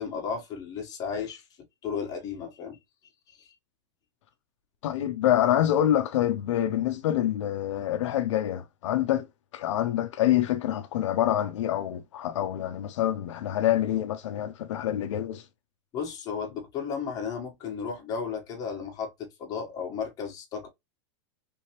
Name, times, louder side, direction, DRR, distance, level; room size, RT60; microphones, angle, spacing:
voice 1, 0.0-1.4 1.8-2.8 3.4-3.5 15.9-20.7, left 6 dB, 25° left, 1.2 m, -34 dB
voice 2, 4.8-9.3 9.5-15.4, left 12 dB, 75° left, 0.5 m, -26 dB
3.4 x 3.1 x 3.0 m
supercardioid pair, 160°, 16 cm